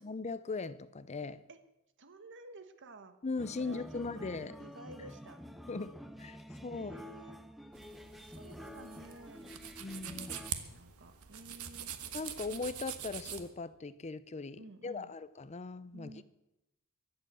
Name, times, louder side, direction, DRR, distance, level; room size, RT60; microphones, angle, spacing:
voice 1, 0.0-1.4 3.2-4.6 5.7-6.9 9.8-10.3 12.1-16.2, left 3 dB, 30° left, 0.6 m, -39 dB
voice 2, 2.0-3.2 3.6-4.3 4.6-5.4 6.7-7.4 8.2-9.6 10.1-11.9 14.6-15.1 15.9-16.2, right 2 dB, 55° right, 1.4 m, -52 dB
sound 1, 3.4-10.5, equal, ahead, 0.8 m, -49 dB
sound 2, 7.7-13.5, right 9 dB, 80° right, 1.3 m, -44 dB
22.5 x 7.8 x 7.6 m
head